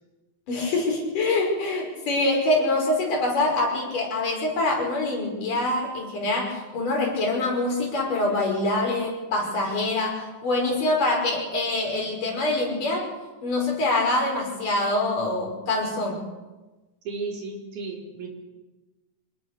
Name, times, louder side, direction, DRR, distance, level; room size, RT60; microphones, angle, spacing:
voice 1, 0.5-13.1 13.4-16.2, left 2 dB, 65° left, 0 dB, 7.3 m, -25 dB
voice 2, 17.1-18.3, right 4 dB, 60° right, 0 dB, 5.4 m, -34 dB
27.0 x 20.0 x 6.9 m, 1.2 s
omnidirectional pair, 4.1 m